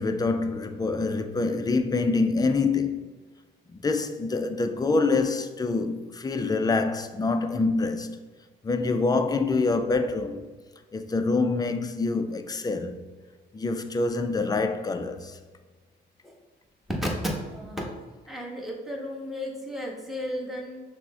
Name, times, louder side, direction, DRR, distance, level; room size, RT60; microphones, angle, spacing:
voice 1, 0.0-3.1 3.7-8.2 8.6-10.5 10.9-13.0 13.5-15.4, left 3 dB, 20° left, 0.4 m, -26 dB
voice 2, 17.4-17.9 18.3-20.8, equal, ahead, 1.1 m, -34 dB
5.8 x 2.1 x 3.7 m
cardioid pair, 90°, 20 cm